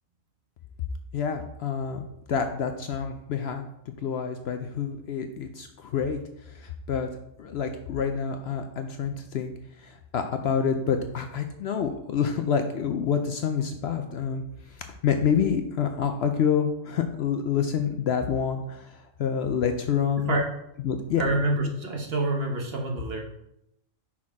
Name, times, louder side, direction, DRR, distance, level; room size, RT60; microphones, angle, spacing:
voice 1, 1.1-2.0 2.3-6.2 6.5-7.1 7.4-9.5 9.8-14.4 14.7-20.3 20.8-21.2, left 7 dB, 65° left, 6 dB, 0.7 m, -27 dB
voice 2, 20.1-20.5 21.2-23.2, right 2 dB, 50° right, 1 dB, 1.2 m, -27 dB
5.9 x 4.3 x 4.7 m, 0.80 s
omnidirectional pair, 1.4 m